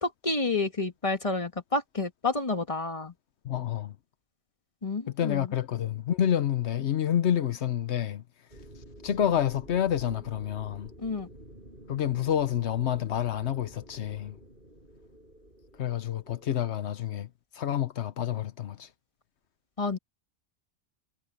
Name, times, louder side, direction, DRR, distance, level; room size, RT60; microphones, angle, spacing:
voice 1, 0.0-3.1 4.8-5.5 11.0-11.3 19.8-20.0, left 3 dB, 30° left, 1.9 m, -29 dB
voice 2, 3.4-3.9 5.1-8.2 9.0-10.9 11.9-14.4 15.8-17.3 17.5-18.9, left 10 dB, 85° left, 1.1 m, -28 dB
sound 1, 8.5-16.7, right 1 dB, 55° right, 7.5 m, -50 dB
omnidirectional pair, 1.1 m